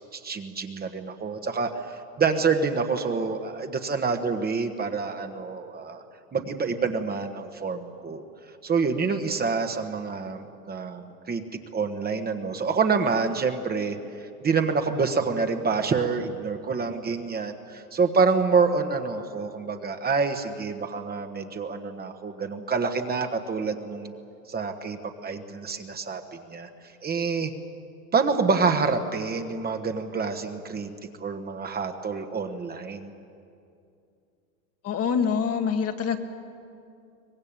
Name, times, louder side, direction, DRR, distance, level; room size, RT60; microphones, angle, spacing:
voice 1, 0.0-6.0 6.3-8.2 8.6-11.4 11.7-14.0 14.4-24.1 24.5-26.2 26.5-26.7 27.0-27.5 28.1-30.9 31.2-33.1, right 4 dB, 20° right, 6 dB, 1.4 m, -27 dB
voice 2, 34.8-36.2, left 6 dB, 35° left, 6 dB, 1.7 m, -25 dB
24.0 x 19.5 x 8.9 m, 2.5 s
supercardioid pair, 115°, 44 cm